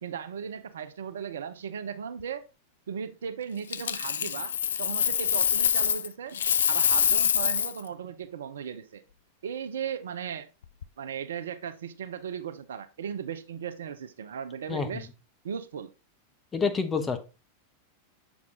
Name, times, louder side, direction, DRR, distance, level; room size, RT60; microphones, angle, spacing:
voice 1, 0.0-2.4 2.9-6.4 6.7-9.0 9.4-10.5 11.0-15.1 15.4-15.9, right 7 dB, 65° right, 0.6 m, -37 dB
Coin (dropping), 3.7-6.1 6.3-7.8 10.6-10.8, left 8 dB, 65° left, 0.3 m, -25 dB
voice 2, 14.7-15.0 16.5-17.2, left 5 dB, 15° left, 1.0 m, -28 dB
7.1 x 4.8 x 3.7 m
figure-of-eight pair, 90°, 0 cm